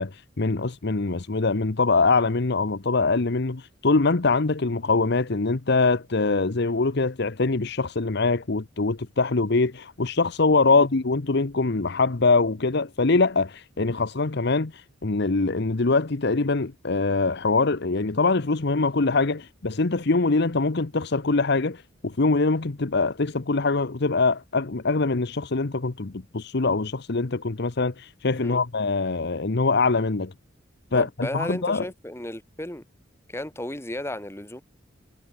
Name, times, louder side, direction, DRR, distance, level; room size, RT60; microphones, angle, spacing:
voice 1, 0.0-30.3 30.9-31.9, left 3 dB, 55° left, 0.9 m, -23 dB
voice 2, 30.9-32.8 33.3-34.6, left 1 dB, 15° left, 3.1 m, -34 dB
head